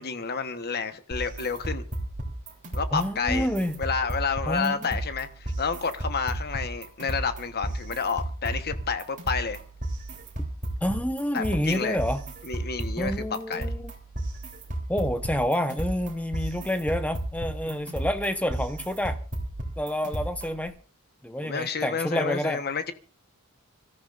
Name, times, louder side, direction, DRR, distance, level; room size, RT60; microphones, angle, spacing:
voice 1, 0.0-1.8 2.7-3.5 3.8-9.6 11.3-12.0 12.4-13.2 13.5-13.7 21.4-22.9, left 5 dB, 45° left, 1.2 m, -30 dB
sound 1, 1.1-20.7, right 1 dB, 35° right, 3.6 m, -34 dB
voice 2, 2.9-3.7 4.5-4.9 10.8-12.2 13.0-13.9 14.9-19.2 19.8-20.7 21.2-22.6, left 1 dB, 5° left, 1.0 m, -28 dB
26.0 x 14.0 x 2.6 m
head